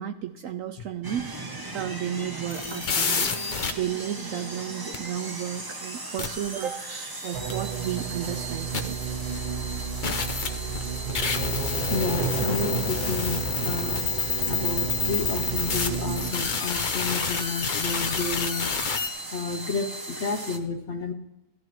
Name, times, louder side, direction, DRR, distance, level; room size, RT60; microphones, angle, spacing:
voice 1, 0.0-1.3 1.7-9.0, right 10 dB, 70° right, 7 dB, 0.8 m, -33 dB
sound 1, 1.0-20.6, right 2 dB, 30° right, 0.4 m, -38 dB
sound 2, 2.5-3.7 4.9-5.0 6.2-6.3 7.5-7.6 8.7-8.8 10.0-19.1, left 5 dB, 75° left, 0.4 m, -28 dB
sound 3, 7.3-16.3, right 6 dB, 85° right, 1.7 m, -32 dB
voice 2, 11.9-14.0 14.5-19.0 19.3-21.1, left 4 dB, 55° left, 6 dB, 0.8 m, -31 dB
15.5 x 12.5 x 3.1 m, 0.93 s
omnidirectional pair, 1.8 m